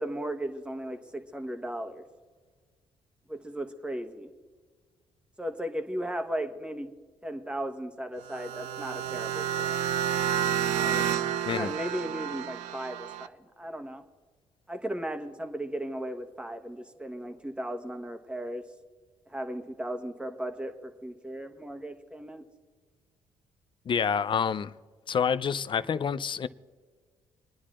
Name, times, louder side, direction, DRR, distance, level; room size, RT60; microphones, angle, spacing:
voice 1, 0.0-2.0 3.3-4.3 5.4-6.9 7.2-9.8 10.8-11.0 11.4-14.0 14.7-18.6 19.3-22.4, right 1 dB, 10° right, 1.2 m, -36 dB
sound 1, 8.2-13.3, right 10 dB, 85° right, 0.5 m, -30 dB
voice 2, 23.9-24.7 25.1-26.5, left 7 dB, 45° left, 0.5 m, -28 dB
28.0 x 9.9 x 2.5 m
supercardioid pair, 70°, 11 cm